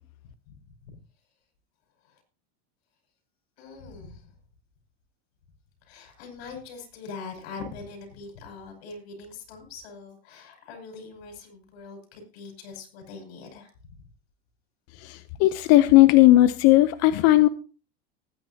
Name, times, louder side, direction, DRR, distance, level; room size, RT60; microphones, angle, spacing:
voice 1, 3.6-4.3 5.9-13.7, left 4 dB, 85° left, 3 dB, 5.6 m, -42 dB
voice 2, 15.0-17.5, left 16 dB, 55° left, 12 dB, 0.7 m, -17 dB
19.5 x 9.6 x 2.8 m, 0.37 s
supercardioid pair, 130°, 31 cm